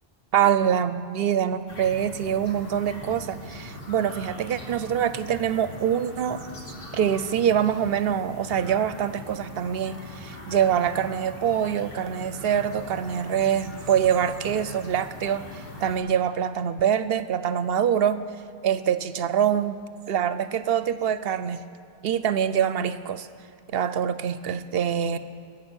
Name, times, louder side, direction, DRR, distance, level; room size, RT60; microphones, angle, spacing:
voice 1, 0.3-6.4 6.9-18.2 18.6-19.8 20.1-21.6 22.0-23.3 23.7-25.2, right 9 dB, 70° right, 13 dB, 0.8 m, -25 dB
sound 1, 1.7-16.0, left 1 dB, 60° left, 2.4 m, -41 dB
21.5 x 8.9 x 6.2 m, 2.5 s
omnidirectional pair, 1.1 m